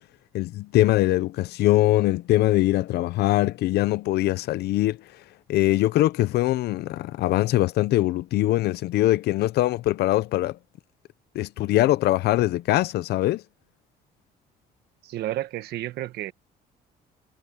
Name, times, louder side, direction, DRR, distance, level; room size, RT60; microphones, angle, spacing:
voice 1, 0.3-5.0 5.5-10.6 11.3-13.4, left 16 dB, 75° left, 0.8 m, -22 dB
voice 2, 15.0-16.3, right 14 dB, 75° right, 1.4 m, -31 dB
cardioid pair, 110°, 17 cm